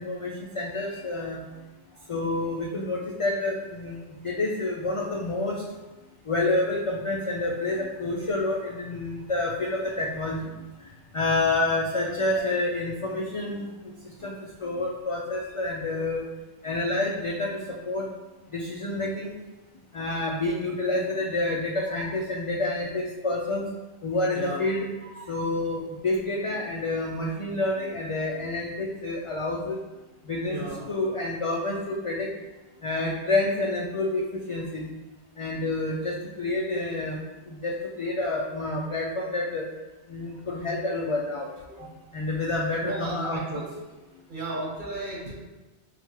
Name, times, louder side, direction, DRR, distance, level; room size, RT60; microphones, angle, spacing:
voice 1, 0.0-1.4 2.1-4.0 4.2-5.5 6.3-10.3 11.1-13.7 14.2-14.3 14.6-16.2 16.6-17.5 17.9-18.0 18.5-19.3 19.9-23.6 24.0-24.9 25.2-29.8 30.3-32.3 32.8-34.9 35.4-37.2 37.6-39.6 40.1-41.5 42.1-43.6, left 2 dB, 60° left, -2 dB, 0.3 m, -28 dB
voice 2, 30.5-30.9 41.8-41.9 42.8-43.7 44.3-45.3, right 2 dB, 50° right, -4 dB, 1.2 m, -34 dB
5.6 x 2.3 x 3.0 m, 1.1 s
omnidirectional pair, 1.1 m